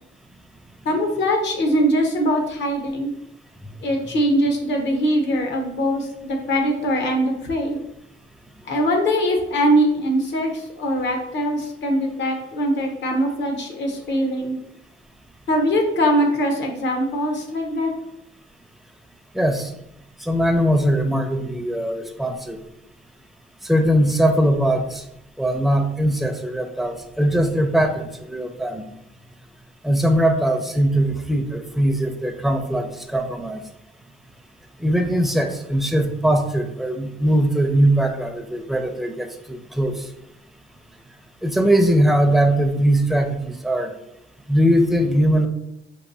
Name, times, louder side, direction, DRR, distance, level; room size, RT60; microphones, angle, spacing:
voice 1, 0.8-3.1 3.8-7.8 8.6-14.6 15.5-17.9, equal, 65° left, 3 dB, 0.9 m, -22 dB
voice 2, 19.3-19.7 20.2-22.6 23.6-25.0 25.4-28.9 29.8-33.6 34.8-40.0 41.4-43.9 44.5-45.5, right 1 dB, ahead, 5 dB, 0.4 m, -20 dB
4.6 x 2.6 x 2.6 m, 0.84 s
cardioid pair, 90°, 20 cm